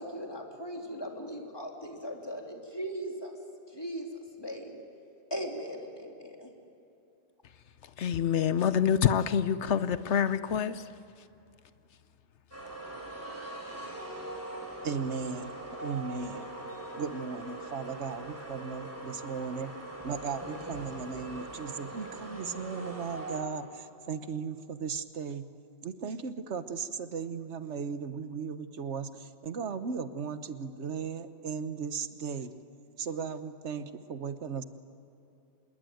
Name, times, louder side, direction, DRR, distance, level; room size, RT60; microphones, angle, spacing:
voice 1, 0.0-3.3 3.7-4.1 4.4-4.8 5.3-6.5, equal, 20° left, 3.0 m, -38 dB
voice 2, 8.0-10.9, left 8 dB, 80° left, 1.1 m, -26 dB
sound 1, 12.5-23.4, right 2 dB, 15° right, 4.7 m, -41 dB
voice 3, 14.8-15.5 15.8-16.5 17.0-19.7 20.0-25.5 25.8-32.5 33.0-34.6, right 5 dB, 80° right, 1.3 m, -36 dB
26.5 x 21.5 x 9.2 m
omnidirectional pair, 1.2 m